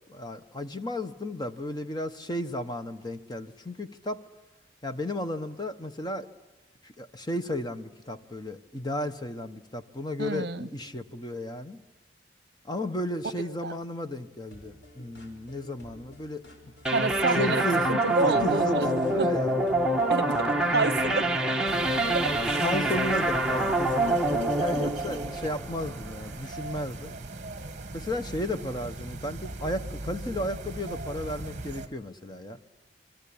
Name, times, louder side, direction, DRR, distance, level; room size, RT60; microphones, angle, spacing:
voice 1, 0.1-4.2 4.8-6.3 6.8-11.8 12.6-16.4 17.3-17.9 18.2-19.5 22.2-27.1 27.9-32.7, left 1 dB, 25° left, 8 dB, 1.0 m, -34 dB
voice 2, 10.2-10.7 13.6-13.8 16.9-18.9 19.2-19.3 20.1-20.5 20.7-21.3 22.1-22.6, right 3 dB, 60° right, 16 dB, 0.8 m, -28 dB
sound 1, 14.5-24.8, equal, 85° left, 4.8 m, -52 dB
sound 2, 16.9-26.2, right 1 dB, 5° right, 1.4 m, -26 dB
sound 3, 21.7-31.9, right 2 dB, 40° right, 1.3 m, -39 dB
28.0 x 22.5 x 8.6 m, 1.1 s
head